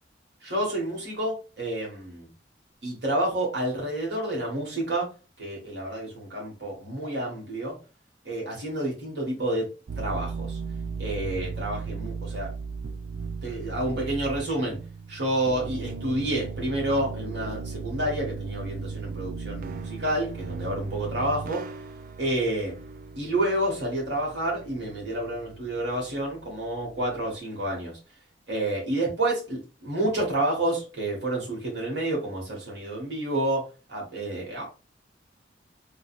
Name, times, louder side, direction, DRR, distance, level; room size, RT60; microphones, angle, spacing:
voice 1, 0.4-2.3 2.8-5.1 5.4-7.8 8.2-9.7 10.0-10.6 11.0-12.5 13.4-14.8 15.1-21.6 22.2-22.7 23.1-28.0 28.5-34.6, right 1 dB, 70° right, -2 dB, 1.6 m, -29 dB
sound 1, 9.9-27.3, right 5 dB, 50° right, 0.3 m, -37 dB
3.7 x 2.4 x 2.5 m, 0.34 s
head